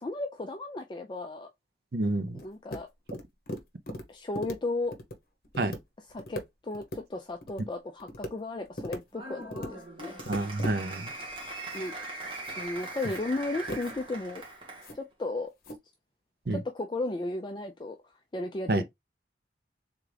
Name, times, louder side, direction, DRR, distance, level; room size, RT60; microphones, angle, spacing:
voice 1, 0.0-1.5 2.3-2.9 4.1-4.9 6.1-10.1 11.7-11.9 12.6-14.4 14.9-15.5 16.5-18.8, left 2 dB, 25° left, 0.4 m, -35 dB
voice 2, 1.9-2.4 5.6-5.7 10.3-11.1 16.5-16.6 18.7-18.8, right 2 dB, 55° right, 0.6 m, -28 dB
sound 1, 2.3-2.8 3.1-4.0 4.3-4.6 4.8-5.1 5.4-5.8 6.1-6.4 6.7-7.0 7.3-7.6 8.0-8.3 8.6-9.0 9.4-9.7 10.1-10.8 11.4-11.9 12.2-13.2 13.7-14.0 14.3-14.4 14.8-15.0 15.6-15.8, equal, 50° left, 0.9 m, -38 dB
Applause, 9.1-14.9, right 2 dB, 30° right, 1.6 m, -41 dB
3.7 x 3.6 x 3.3 m
head